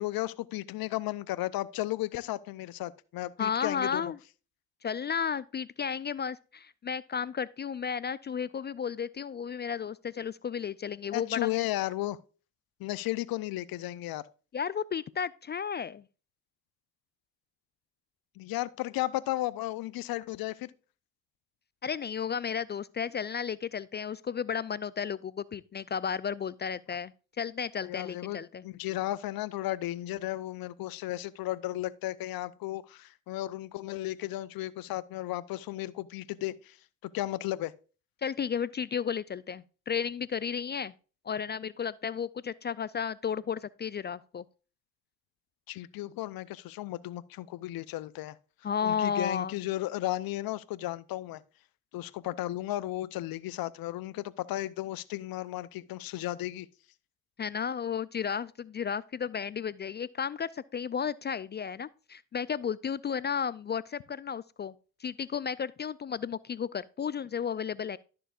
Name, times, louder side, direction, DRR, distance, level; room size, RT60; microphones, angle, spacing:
voice 1, 0.0-4.1 11.1-12.2 12.8-14.3 18.4-20.7 27.8-36.8 37.0-37.7 45.7-48.4 48.8-51.4 51.9-56.7, left 16 dB, 65° left, 0.7 m, -34 dB
voice 2, 3.4-4.2 4.8-11.5 14.5-16.0 21.8-28.6 38.2-40.9 41.2-44.4 48.6-49.6 57.4-64.7 65.0-68.0, left 7 dB, 30° left, 0.3 m, -33 dB
12.0 x 6.8 x 2.4 m
hypercardioid pair, 55°, 39 cm